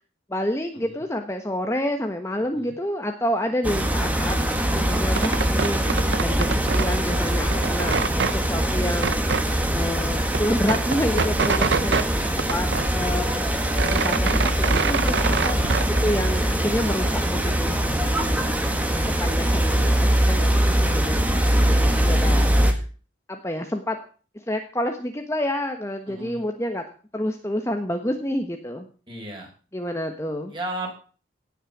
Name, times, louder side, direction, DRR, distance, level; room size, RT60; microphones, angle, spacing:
voice 1, 0.3-8.0 8.3-12.1 12.5-12.7 12.9-15.5 15.8-18.8 19.2-21.2 21.5-22.8 23.3-24.0 24.3-26.8 27.1-28.9 29.7-30.5, left 1 dB, 15° left, 4 dB, 1.3 m, -29 dB
voice 2, 2.4-2.7 12.1-12.3 15.8-16.1 26.1-26.4 29.1-29.5 30.5-30.9, right 1 dB, 25° right, 0 dB, 6.1 m, -36 dB
sound 1, 3.6-22.7, right 1 dB, 10° right, 1.9 m, -22 dB
sound 2, 5.0-7.0 7.3-8.4 9.0-9.5 9.9-10.0 10.2-12.1 12.4-13.3 13.6-16.0, right 5 dB, 70° right, 0.8 m, -26 dB
18.0 x 6.7 x 7.3 m, 0.39 s
head